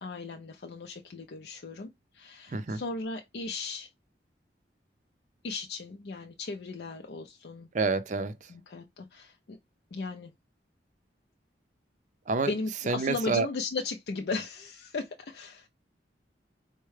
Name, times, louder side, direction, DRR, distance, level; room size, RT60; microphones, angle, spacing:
voice 1, 0.0-3.9 5.4-7.7 8.5-9.6 9.9-10.3 12.4-15.7, left 3 dB, 60° left, 0.5 m, -36 dB
voice 2, 7.7-8.3 12.3-12.5 12.9-13.5, right 4 dB, 40° right, 0.5 m, -28 dB
4.5 x 2.1 x 3.1 m
head